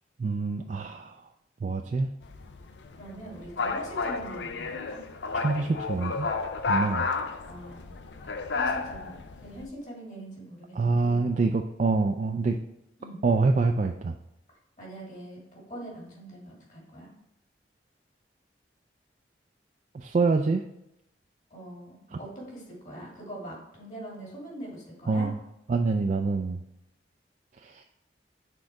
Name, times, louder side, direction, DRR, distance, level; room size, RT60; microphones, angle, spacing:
voice 1, 0.2-1.2 1.6-2.1 5.4-6.3 6.7-7.1 10.7-12.6 13.2-14.1 19.9-20.6 22.1-22.2 25.1-25.4 25.7-26.6 27.6-27.8, right 3 dB, 40° right, 4 dB, 0.3 m, -26 dB
sound 1, 2.2-9.7, left 4 dB, 85° left, 0.5 m, -32 dB
voice 2, 3.0-5.0 7.5-7.9 8.5-11.2 13.0-13.2 14.8-17.1 21.5-25.3, right 1 dB, 45° left, -3 dB, 2.4 m, -43 dB
6.3 x 3.8 x 4.7 m, 0.83 s
head